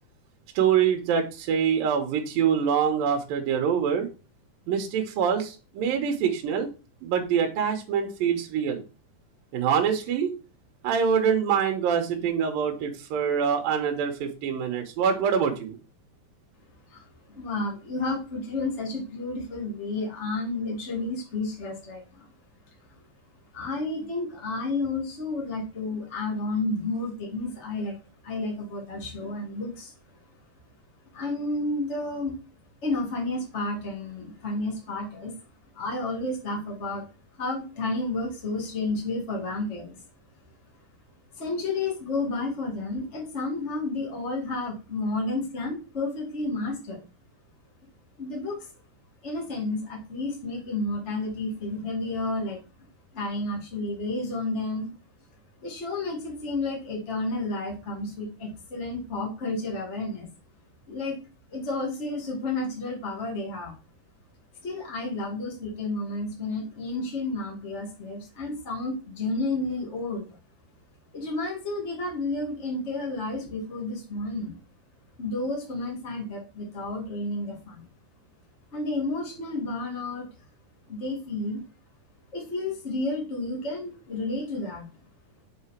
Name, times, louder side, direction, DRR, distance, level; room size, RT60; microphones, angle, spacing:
voice 1, 0.5-4.1 4.7-6.7 7.0-8.8 9.5-10.3 10.8-15.8, right 7 dB, 70° right, 3 dB, 2.7 m, -25 dB
voice 2, 16.9-22.2 23.5-27.9 28.2-29.9 31.1-32.3 32.8-35.4 35.7-37.0 37.4-40.0 41.3-47.0 48.2-48.7 49.2-52.6 53.1-54.9 55.6-60.3 60.9-61.2 61.5-63.7 64.6-70.4 71.1-74.5 75.2-77.8 78.7-80.3 80.9-81.6 82.3-84.9, left 2 dB, 25° left, -2 dB, 1.9 m, -31 dB
6.7 x 4.7 x 4.4 m, 0.32 s
omnidirectional pair, 4.6 m